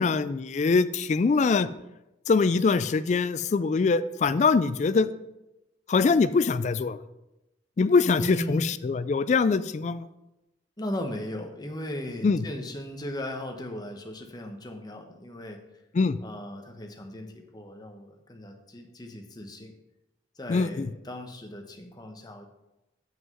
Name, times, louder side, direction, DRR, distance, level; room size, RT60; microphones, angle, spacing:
voice 1, 0.0-1.7 2.3-5.1 5.9-7.0 7.8-10.0 12.2-12.4 16.0-16.2 20.5-20.9, left 4 dB, 40° left, 14 dB, 0.3 m, -23 dB
voice 2, 8.2-8.7 10.8-15.6 16.2-19.8 20.4-22.5, left 1 dB, 20° left, 3 dB, 1.0 m, -37 dB
7.8 x 5.6 x 5.4 m, 0.92 s
head